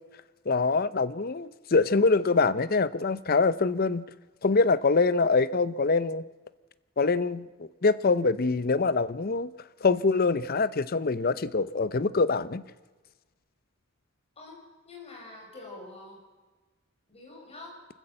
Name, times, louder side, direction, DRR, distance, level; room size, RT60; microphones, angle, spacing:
voice 1, 0.5-4.0 4.4-6.2 7.0-9.5 9.8-12.6, left 4 dB, 45° left, 16 dB, 0.6 m, -24 dB
voice 2, 14.4-16.2 17.1-17.8, left 2 dB, 30° left, 0 dB, 6.2 m, -46 dB
25.0 x 14.5 x 7.8 m, 1.3 s
head